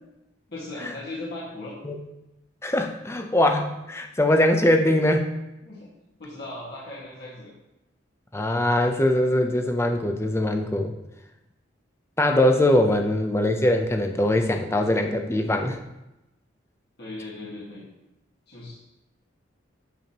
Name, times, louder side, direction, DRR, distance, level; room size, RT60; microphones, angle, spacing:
voice 1, 0.5-1.7 5.6-5.9 6.2-7.5 12.7-12.9 17.0-17.9 18.5-18.8, left 2 dB, 55° left, -7 dB, 1.7 m, -37 dB
voice 2, 2.6-5.4 8.3-10.9 12.2-15.8, left 1 dB, 15° left, 4 dB, 0.5 m, -22 dB
9.1 x 7.0 x 2.9 m, 0.93 s
head